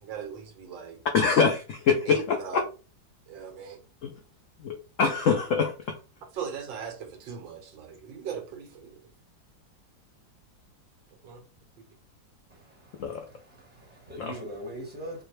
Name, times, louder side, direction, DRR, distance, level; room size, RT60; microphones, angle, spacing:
voice 1, 0.0-1.0 2.1-2.7 3.3-3.8 5.5-5.6 6.3-9.1 11.2-11.4, right 7 dB, 80° right, 1.6 m, -39 dB
voice 2, 1.1-2.6 4.0-4.1 4.6-5.7 13.0-13.2 14.2-14.4, left 5 dB, 80° left, 0.7 m, -24 dB
voice 3, 12.5-15.2, equal, 5° right, 1.0 m, -42 dB
4.7 x 2.2 x 3.1 m
omnidirectional pair, 2.0 m